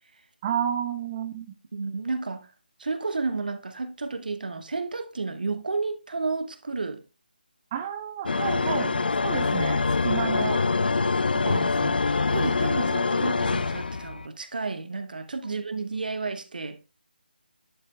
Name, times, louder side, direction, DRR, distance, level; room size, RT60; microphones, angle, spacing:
voice 1, 0.4-1.5 7.7-10.6 11.3-12.0, right 9 dB, 20° right, 0.4 m, -31 dB
voice 2, 1.7-2.5 2.8-7.0 12.3-16.8, right 3 dB, 60° right, 1.1 m, -31 dB
sound 1, 8.3-14.3, left 4 dB, 65° left, 0.3 m, -25 dB
11.0 x 4.2 x 3.2 m
figure-of-eight pair, 155°, 5 cm